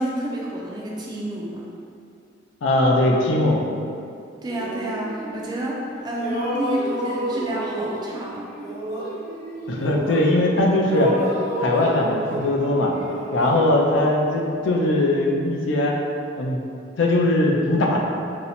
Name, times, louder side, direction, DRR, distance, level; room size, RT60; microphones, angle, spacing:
voice 1, 0.0-1.6 4.4-8.4, right 1 dB, 20° right, -3 dB, 0.3 m, -29 dB
voice 2, 2.6-3.6 9.7-11.1 11.6-12.9 13.3-15.9 16.4-16.6 17.0-18.0, left 1 dB, 70° left, -1 dB, 0.4 m, -20 dB
sound 1, 4.5-5.8 6.1-10.5 10.8-14.6, equal, 40° left, 1.1 m, -30 dB
2.7 x 2.0 x 4.0 m, 2.6 s
head